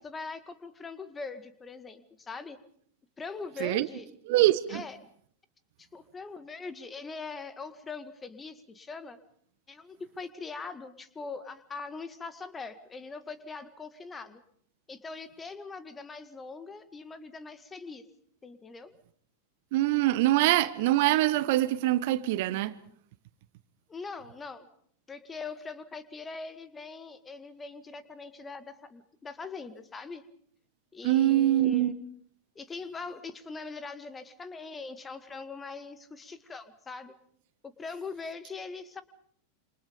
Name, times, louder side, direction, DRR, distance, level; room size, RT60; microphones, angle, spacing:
voice 1, 0.0-2.6 3.2-4.1 4.7-5.0 5.8-9.2 9.7-14.4 14.9-18.1 18.4-18.9 23.9-24.7 25.1-30.2 30.9-31.9 32.6-37.1 37.6-39.0, left 4 dB, 15° left, 1.9 m, -42 dB
voice 2, 4.3-4.8 19.7-22.7 31.0-31.9, right 15 dB, 50° right, 1.1 m, -24 dB
27.5 x 26.5 x 5.3 m
figure-of-eight pair, 90°, 0 cm